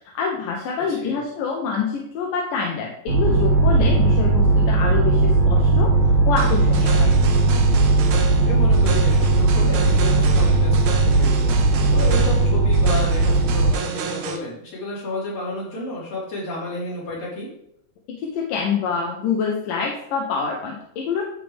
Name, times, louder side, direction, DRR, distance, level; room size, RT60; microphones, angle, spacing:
voice 1, 0.1-5.9 6.3-7.1 18.1-21.2, left 5 dB, 70° left, -1 dB, 2.3 m, -26 dB
sound 1, 3.1-13.7, right 3 dB, 60° right, 2.1 m, -17 dB
sound 2, 6.4-14.4, right 7 dB, 85° right, 1.6 m, -32 dB
voice 2, 8.4-17.5, left 2 dB, 45° left, -9 dB, 4.8 m, -32 dB
14.5 x 4.9 x 3.5 m, 0.78 s
omnidirectional pair, 4.6 m